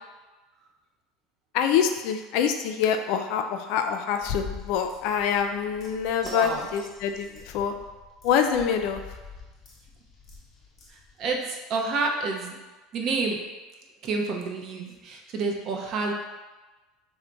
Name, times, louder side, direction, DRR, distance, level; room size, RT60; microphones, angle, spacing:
voice 1, 1.5-7.7 8.2-9.0, left 8 dB, 65° left, 6 dB, 0.3 m, -25 dB
sound 1, 4.2-11.4, left 4 dB, 35° left, 0.9 m, -45 dB
voice 2, 6.2-6.7 10.9-12.6 12.9-13.4 14.0-16.1, right 3 dB, 50° right, 1 dB, 0.6 m, -29 dB
3.3 x 2.1 x 3.8 m, 1.2 s
hypercardioid pair, 95°, 0 cm